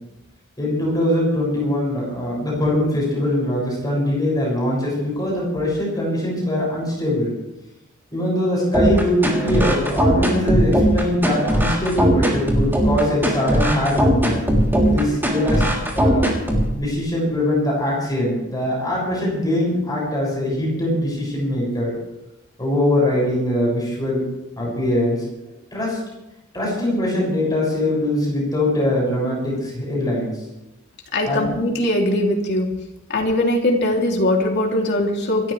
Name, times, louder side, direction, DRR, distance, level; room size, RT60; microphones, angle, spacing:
voice 1, 0.6-7.3 8.1-14.4 14.8-16.2 16.7-21.9 22.6-24.2 24.6-25.3 25.7-26.0 26.5-30.4 31.2-31.5, left 1 dB, 20° left, -4 dB, 6.8 m, -22 dB
sound 1, 8.7-16.7, equal, 10° right, 3.4 m, -19 dB
voice 2, 31.1-32.7 33.1-35.5, left 1 dB, 55° left, 0 dB, 3.1 m, -20 dB
28.0 x 13.0 x 3.4 m, 0.95 s
head